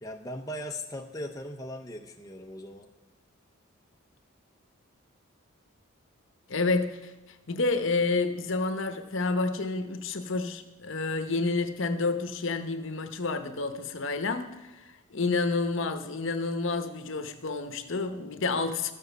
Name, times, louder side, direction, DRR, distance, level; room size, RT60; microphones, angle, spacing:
voice 1, 0.0-2.9, left 1 dB, 15° left, 2 dB, 0.6 m, -39 dB
voice 2, 6.5-7.1 7.5-18.9, left 3 dB, 65° left, 8 dB, 0.9 m, -29 dB
13.5 x 7.2 x 6.7 m, 1.0 s
head